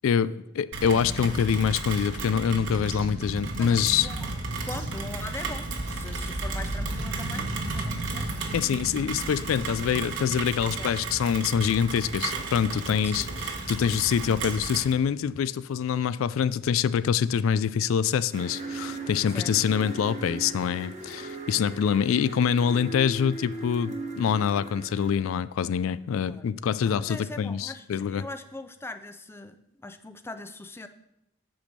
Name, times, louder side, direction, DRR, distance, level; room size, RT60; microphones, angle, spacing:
voice 1, 0.0-4.1 8.5-28.2, left 7 dB, 80° left, 16 dB, 0.3 m, -25 dB
Rain, 0.7-14.9, right 3 dB, 65° right, 1.2 m, -33 dB
voice 2, 3.6-8.3 10.8-10.9 13.0-13.3 19.3-19.5 26.2-26.5 26.8-30.9, left 2 dB, 10° left, 9 dB, 0.5 m, -41 dB
sound 1, 18.3-25.1, right 2 dB, 35° right, 1.0 m, -38 dB
7.9 x 5.2 x 6.6 m, 0.86 s
head